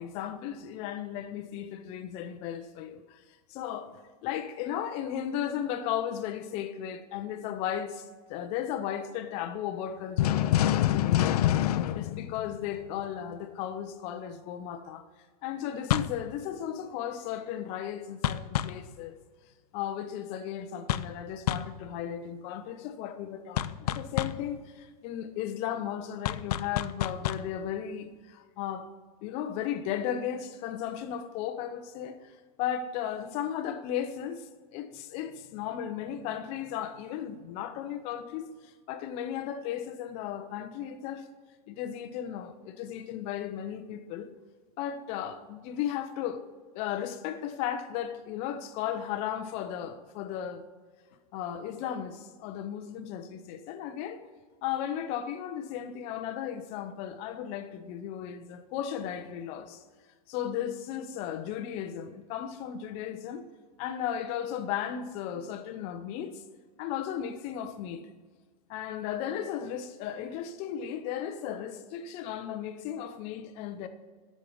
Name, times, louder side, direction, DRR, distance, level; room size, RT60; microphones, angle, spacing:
voice 1, 0.0-3.2 3.5-11.5 11.9-15.1 15.4-19.2 19.7-28.9 29.2-41.3 41.7-44.3 44.8-46.4 46.7-50.7 51.3-54.2 54.6-59.8 60.3-63.5 63.8-66.4 66.8-68.0 68.7-73.9, left 10 dB, 30° left, 0.7 m, -35 dB
sound 1, 10.2-13.0 15.9-16.2 18.2-18.9 20.9-21.2 21.5-21.8 23.6-24.5 26.3-27.5, left 12 dB, 80° left, 0.5 m, -27 dB
8.1 x 6.5 x 7.0 m
supercardioid pair, 160°, 19 cm